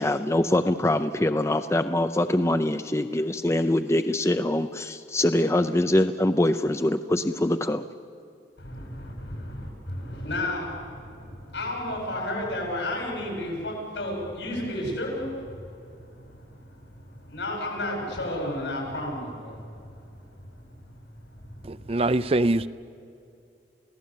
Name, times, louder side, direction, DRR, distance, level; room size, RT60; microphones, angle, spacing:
voice 1, 0.0-7.9, left 1 dB, 15° left, 0.5 m, -24 dB
voice 2, 8.6-15.3 15.9-16.6 17.0-20.0 21.3-21.6, left 1 dB, 80° left, 8.0 m, -32 dB
voice 3, 21.7-22.7, right 2 dB, 30° right, 0.5 m, -23 dB
29.0 x 17.0 x 8.6 m
head